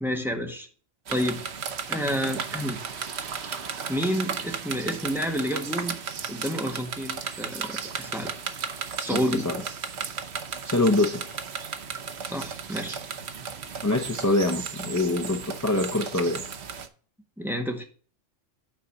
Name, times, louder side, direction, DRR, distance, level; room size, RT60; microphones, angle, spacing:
voice 1, 0.0-0.7 1.1-1.4 1.9-2.8 3.6-6.0 6.3-8.3 9.0-9.5 12.2-13.0 17.4-17.8, equal, ahead, 1.5 m, -29 dB
Heavy Rain Pouring Down A Window, 1.1-16.9, right 6 dB, 60° right, 1.1 m, -35 dB
voice 2, 9.1-9.6 10.6-11.4 13.8-16.5, left 2 dB, 20° left, 0.6 m, -25 dB
9.3 x 4.0 x 7.0 m
omnidirectional pair, 1.3 m